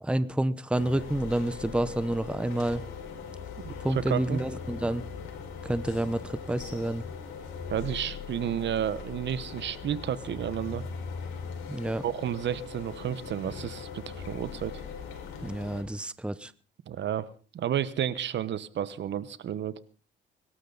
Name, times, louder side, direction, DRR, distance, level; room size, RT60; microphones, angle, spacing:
voice 1, 0.0-2.8 3.8-5.0 5.6-7.0 11.7-12.0 15.4-16.5, right 1 dB, 5° right, 15 dB, 0.8 m, -29 dB
sound 1, 0.7-15.8, left 6 dB, 90° left, 4.8 m, -40 dB
voice 2, 3.6-4.4 7.7-10.8 12.0-14.8 16.9-19.8, right 10 dB, 65° right, 16 dB, 1.1 m, -32 dB
23.5 x 12.5 x 4.0 m, 0.38 s
cardioid pair, 90°, 20 cm